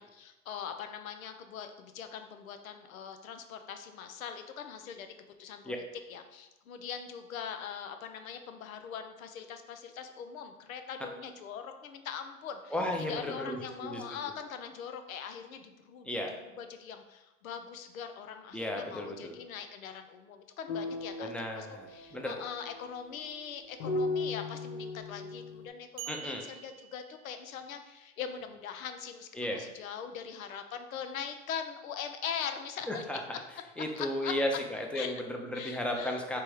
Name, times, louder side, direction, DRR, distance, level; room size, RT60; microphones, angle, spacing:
voice 1, 0.0-5.1 5.4-12.7 13.1-33.0 34.0-34.3 34.9-35.2 35.5-36.4, left 7 dB, 85° left, 7 dB, 0.6 m, -42 dB
voice 2, 12.7-14.0 16.0-16.3 18.5-19.4 21.2-22.4 26.1-26.4 29.4-29.6 32.9-33.4 33.8-36.4, left 1 dB, 5° left, 1 dB, 0.6 m, -34 dB
sound 1, 20.7-25.7, left 3 dB, 60° left, 0.8 m, -37 dB
sound 2, 26.0-27.8, right 12 dB, 75° right, 0.6 m, -46 dB
3.4 x 3.0 x 4.7 m, 1.0 s
hypercardioid pair, 85°, 40 cm